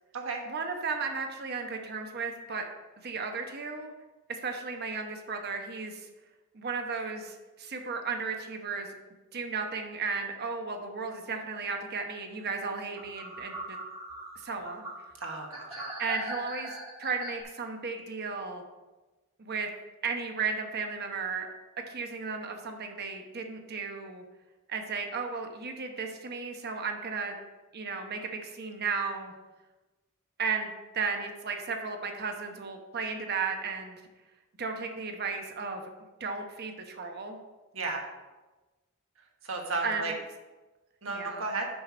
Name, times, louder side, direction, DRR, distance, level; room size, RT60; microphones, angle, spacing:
voice 1, 0.5-2.6 3.0-3.9 4.3-6.1 6.5-8.9 9.3-13.8 14.4-14.9 16.0-18.6 19.4-19.7 20.0-21.5 21.9-24.2 24.7-27.3 27.7-29.3 30.4-34.0 34.6-35.9 36.2-37.4 39.8-40.1 41.1-41.5, right 4 dB, 45° right, 4 dB, 0.9 m, -34 dB
sound 1, 13.0-17.4, right 1 dB, 15° right, 1.5 m, -40 dB
voice 2, 15.2-16.0 37.7-38.0 39.4-40.1 41.0-41.7, right 3 dB, 65° right, 1 dB, 1.4 m, -34 dB
6.6 x 5.9 x 4.9 m, 1.2 s
head